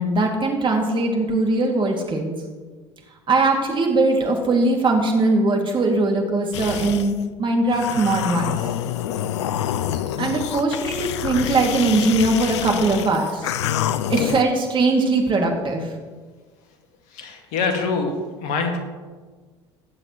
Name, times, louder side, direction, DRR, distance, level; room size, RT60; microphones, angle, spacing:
voice 1, 0.0-2.3 3.3-8.6 10.2-13.5 14.1-15.9, right 2 dB, 35° right, 1 dB, 2.4 m, -20 dB
sound 1, 6.5-7.1 7.7-14.4, left 11 dB, 75° left, 0.5 m, -27 dB
voice 2, 17.1-18.1 18.4-18.8, left 4 dB, 60° left, 4 dB, 1.9 m, -24 dB
19.5 x 7.7 x 3.1 m, 1.4 s
hypercardioid pair, 65°, 15 cm